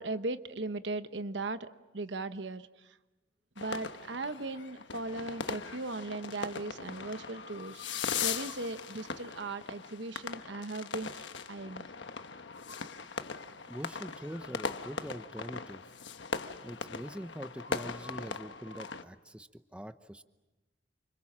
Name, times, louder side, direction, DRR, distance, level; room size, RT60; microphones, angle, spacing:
voice 1, 0.0-3.0 3.6-7.9 8.2-11.9, right 2 dB, 75° right, 10 dB, 1.1 m, -38 dB
sound 1, 3.6-19.0, left 5 dB, 85° left, 1.2 m, -39 dB
voice 2, 13.7-15.8 16.6-20.2, equal, 5° right, 10 dB, 0.8 m, -44 dB
29.0 x 26.0 x 7.4 m, 1.1 s
head